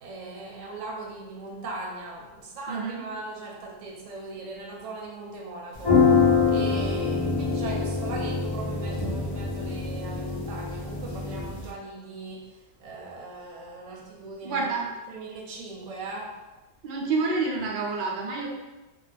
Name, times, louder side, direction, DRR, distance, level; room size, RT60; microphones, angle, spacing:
voice 1, 0.0-14.7 15.1-16.3, right 2 dB, 85° right, -1 dB, 0.9 m, -39 dB
voice 2, 2.7-3.0 14.4-14.9 16.8-18.5, right 4 dB, 55° right, -3 dB, 0.7 m, -28 dB
sound 1, 5.8-11.7, left 5 dB, 35° left, 0.4 m, -25 dB
2.5 x 2.4 x 3.3 m, 1.1 s
omnidirectional pair, 1.2 m